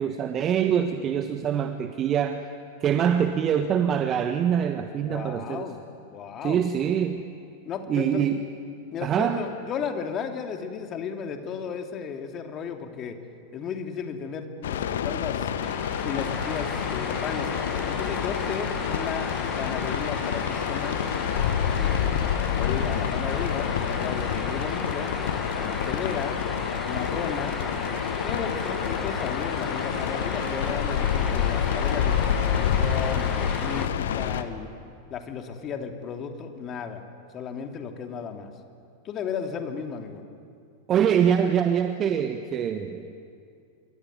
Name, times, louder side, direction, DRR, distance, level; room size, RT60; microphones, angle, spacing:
voice 1, 0.0-2.5 2.8-5.7 6.4-7.3 7.9-8.4 9.0-9.5 40.9-43.1, right 8 dB, 30° right, 8 dB, 1.3 m, -24 dB
voice 2, 5.0-5.8 6.1-6.6 7.6-8.2 8.9-13.2 13.5-15.5 16.0-17.5 17.9-19.3 19.6-21.0 21.3-21.9 22.5-25.1 25.6-26.4 26.8-27.6 28.2-34.7 35.1-37.0 37.3-38.5 39.0-40.2, left 7 dB, 30° left, 5 dB, 2.9 m, -34 dB
sound 1, 14.6-34.4, left 8 dB, 60° left, 1.4 m, -28 dB
sound 2, 15.6-33.9, left 1 dB, 5° left, 1.4 m, -36 dB
26.0 x 24.0 x 9.4 m, 2.4 s
figure-of-eight pair, 90°, 0 cm